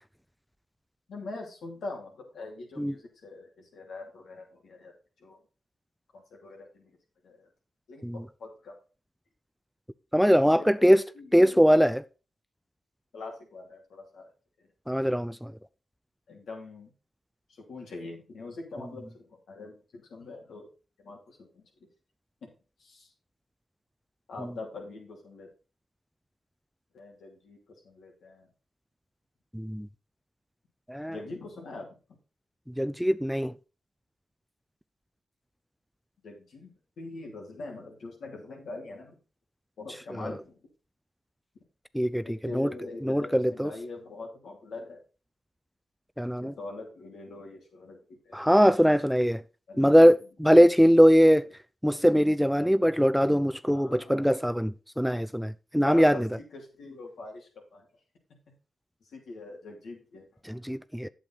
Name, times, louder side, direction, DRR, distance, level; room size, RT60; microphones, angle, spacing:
voice 1, 1.1-4.9 5.2-5.4 6.1-6.9 7.2-7.5 7.9-8.1 8.4-8.7 10.6-11.6 13.1-14.3 16.3-16.9 17.7-20.7 21.0-21.6 22.4-22.5 22.8-23.1 24.3-25.5 26.9-27.6 27.8-28.5 31.1-31.9 36.2-39.2 39.8-40.6 42.3-45.0 46.4-48.4 49.7-50.0 50.5-50.6 53.7-54.2 55.8-57.8 59.1-60.2, left 3 dB, 80° left, 2.9 m, -43 dB
voice 2, 10.1-11.0 11.3-12.0 14.9-15.5 29.5-29.9 30.9-31.2 32.8-33.5 40.1-40.3 41.9-42.7 43.0-43.7 46.2-46.5 48.3-49.4 49.8-51.4 51.8-56.3 60.5-61.1, equal, ahead, 0.4 m, -22 dB
8.6 x 7.4 x 4.1 m
supercardioid pair, 45°, 0 cm